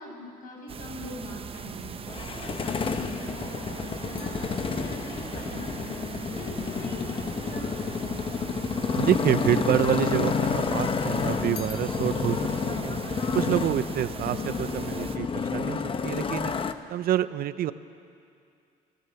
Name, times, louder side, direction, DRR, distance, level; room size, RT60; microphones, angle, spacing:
voice 1, 0.0-2.0 2.4-5.9 6.3-8.2, left 1 dB, 55° left, 0 dB, 7.4 m, -42 dB
sound 1, 0.7-15.2, right 6 dB, 35° right, 0.9 m, -39 dB
Motorcycle, 2.1-16.7, left 5 dB, 30° left, 1.0 m, -30 dB
voice 2, 9.0-12.4 12.7-13.0 13.3-16.5 16.9-17.7, right 12 dB, 60° right, 14 dB, 0.7 m, -27 dB
sound 2, 11.5-14.5 14.8-15.3, left 7 dB, 75° left, 2.3 m, -52 dB
28.5 x 17.0 x 7.0 m, 2.4 s
cardioid pair, 110°, 17 cm